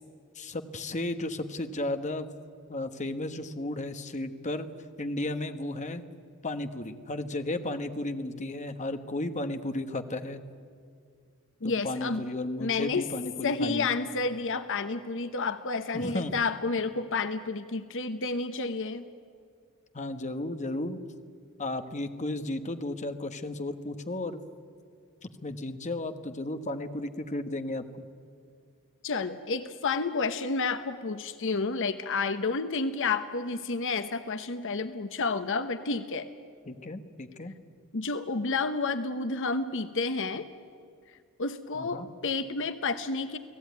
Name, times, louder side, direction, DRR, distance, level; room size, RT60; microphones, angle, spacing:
voice 1, 0.3-2.3 2.7-4.7 5.0-6.0 6.4-10.4 11.6-13.9 15.9-16.3 19.9-21.0 21.6-24.4 25.2-28.1 36.7-37.5 41.7-42.1, left 2 dB, 35° left, 8 dB, 1.3 m, -34 dB
voice 2, 11.6-12.2 12.6-13.0 13.4-19.1 29.0-36.3 37.9-40.5 41.4-43.4, left 4 dB, 60° left, 11 dB, 1.0 m, -30 dB
29.5 x 18.5 x 9.4 m, 2.2 s
head